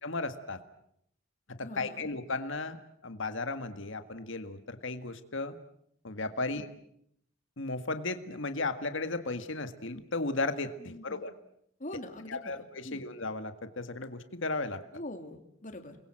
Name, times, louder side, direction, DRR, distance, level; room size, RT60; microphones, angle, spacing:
voice 1, 0.0-0.6 1.5-2.8 3.0-5.6 6.0-6.7 7.6-11.3 12.3-14.8, left 3 dB, 65° left, 9 dB, 1.8 m, -35 dB
voice 2, 1.6-2.1 6.5-6.6 10.8-11.2 11.8-13.0 14.9-16.0, left 1 dB, 40° left, 5 dB, 3.2 m, -44 dB
29.5 x 22.0 x 7.6 m, 0.72 s
head